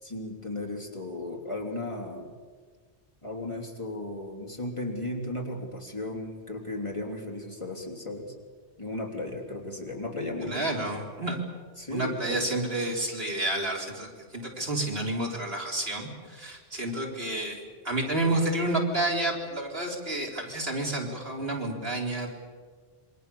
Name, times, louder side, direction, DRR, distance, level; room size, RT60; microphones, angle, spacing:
voice 1, 0.0-2.3 3.2-8.3 8.8-10.6 11.8-12.5, left 2 dB, 25° left, 0 dB, 3.3 m, -35 dB
voice 2, 10.4-11.4 11.9-17.6 17.8-22.3, right 1 dB, 60° right, -1 dB, 4.2 m, -30 dB
27.5 x 23.5 x 7.0 m, 1.5 s
omnidirectional pair, 1.1 m